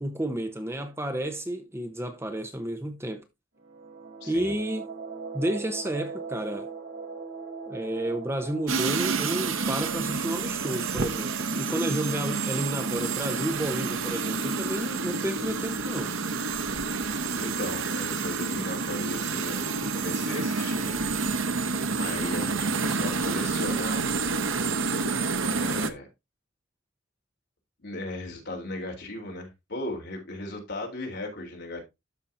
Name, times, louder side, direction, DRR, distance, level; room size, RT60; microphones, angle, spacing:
voice 1, 0.0-3.3 4.3-4.8 5.3-6.7 7.7-16.1, right 1 dB, 10° right, 0.8 m, -31 dB
sound 1, 3.6-12.2, right 4 dB, 60° right, 4.8 m, -41 dB
voice 2, 4.2-4.5 17.3-21.1 22.0-24.1 25.4-26.1 27.8-31.8, left 2 dB, 55° left, 3.4 m, -37 dB
sound 2, 8.7-25.9, right 4 dB, 75° right, 1.0 m, -29 dB
12.5 x 5.6 x 2.6 m
head